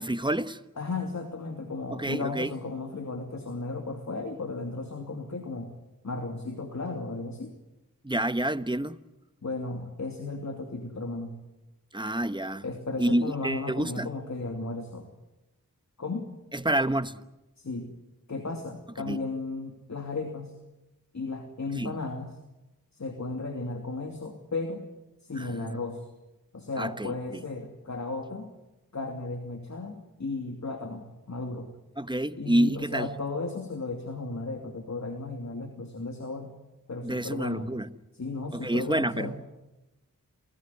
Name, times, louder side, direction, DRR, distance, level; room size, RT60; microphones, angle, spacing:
voice 1, 0.0-0.6 1.9-2.5 8.0-9.0 11.9-12.6 13.0-14.1 16.5-17.2 19.0-19.2 21.7-21.9 25.4-25.8 26.8-27.4 32.0-33.1 37.0-37.9 38.5-39.3, right 1 dB, 15° right, 1.1 m, -28 dB
voice 2, 0.8-5.7 6.0-7.5 9.4-11.4 12.6-15.1 16.0-16.3 17.6-17.9 18.3-20.5 21.1-22.3 22.9-24.9 25.2-26.0 26.5-28.5 28.9-31.7 32.4-36.5 36.9-37.7 38.1-39.4, left 3 dB, 55° left, 2.7 m, -35 dB
28.5 x 18.0 x 9.8 m
wide cardioid pair, 60°, 34 cm